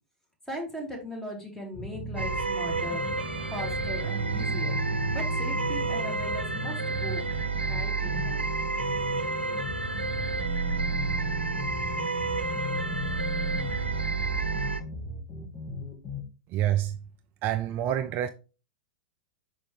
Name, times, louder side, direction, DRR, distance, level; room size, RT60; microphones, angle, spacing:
voice 1, 0.5-3.0 3.5-4.7 5.1-7.2 7.6-8.5, equal, 5° left, 2.7 m, -38 dB
sound 1, 1.7-16.2, left 2 dB, 30° left, 2.2 m, -38 dB
sound 2, 2.2-14.8, right 3 dB, 85° right, 0.9 m, -30 dB
voice 2, 16.5-17.0 17.4-18.3, right 12 dB, 35° right, 0.4 m, -27 dB
6.0 x 5.0 x 3.4 m
hypercardioid pair, 105°, 6 cm